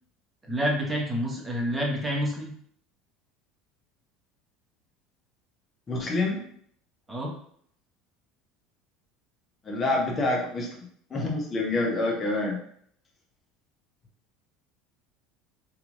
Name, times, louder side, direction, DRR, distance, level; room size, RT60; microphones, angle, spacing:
voice 1, 0.4-2.5 7.1-7.3, equal, 15° right, -1 dB, 0.9 m, -28 dB
voice 2, 5.9-6.4 9.6-10.8 11.1-12.6, left 2 dB, 30° left, -1 dB, 0.8 m, -27 dB
2.9 x 2.5 x 2.5 m, 0.62 s
hypercardioid pair, 70°, 0 cm